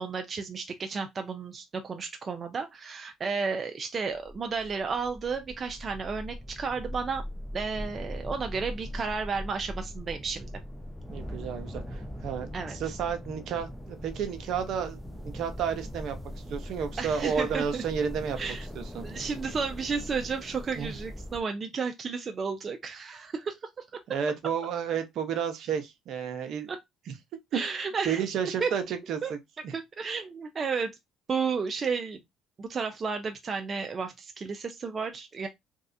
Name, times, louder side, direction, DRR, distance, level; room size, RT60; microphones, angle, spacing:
voice 1, 0.0-7.2 7.5-10.5 12.5-12.9 17.0-17.8 18.4-18.7 19.0-24.0 26.7-26.8 27.5-28.2 28.6-28.7 29.2-29.3 29.7-31.0 31.3-32.2 32.6-35.5, right 5 dB, 40° right, 0.4 m, -32 dB
sound 1, 4.0-21.4, equal, ahead, 0.7 m, -40 dB
voice 2, 11.1-16.2 16.5-19.0 20.8-20.9 24.1-26.7 28.0-29.4 29.6-29.7, right 7 dB, 65° right, 0.8 m, -32 dB
3.1 x 2.6 x 2.6 m
supercardioid pair, 85°, 0 cm